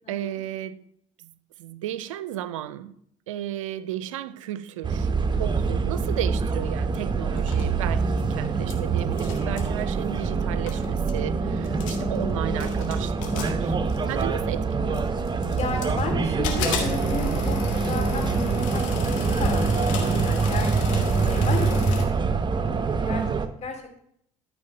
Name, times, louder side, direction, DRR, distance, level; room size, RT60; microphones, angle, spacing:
voice 1, 0.1-0.8 1.2-1.3 1.6-3.0 3.3-13.7 14.1-15.1 20.1-20.5, right 12 dB, 85° right, 0.5 m, -34 dB
sound 1, 4.8-23.5, right 4 dB, 30° right, 0.9 m, -25 dB
voice 2, 5.3-5.6 9.0-9.5 11.8-12.0 15.4-19.1 19.4-20.7 21.2-21.9 22.6-23.2 23.6-24.0, left 4 dB, 45° left, 2.7 m, -34 dB
sound 2, 7.3-8.7 9.0-9.7 10.4-10.5 10.7-11.2 11.6-12.2 12.6-14.4 14.9-16.1 16.4-22.1, left 5 dB, 85° left, 1.7 m, -35 dB
13.0 x 4.4 x 5.4 m
hypercardioid pair, 65°, 16 cm